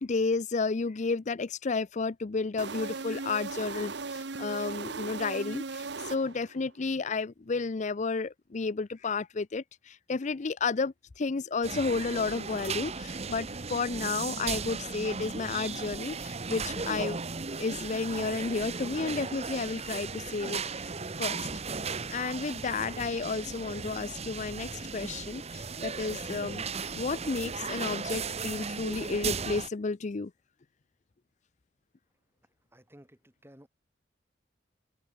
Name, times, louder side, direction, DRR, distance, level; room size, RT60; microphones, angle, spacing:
voice 1, 0.0-17.2 17.6-20.9 21.2-21.5 22.1-26.6 26.9-30.3, left 4 dB, 40° left, 0.5 m, -32 dB
sound 1, 2.6-6.6, right 4 dB, 65° right, 1.1 m, -38 dB
sound 2, 11.6-29.7, right 5 dB, 35° right, 1.1 m, -36 dB
voice 2, 32.7-33.7, equal, 15° right, 3.5 m, -55 dB
head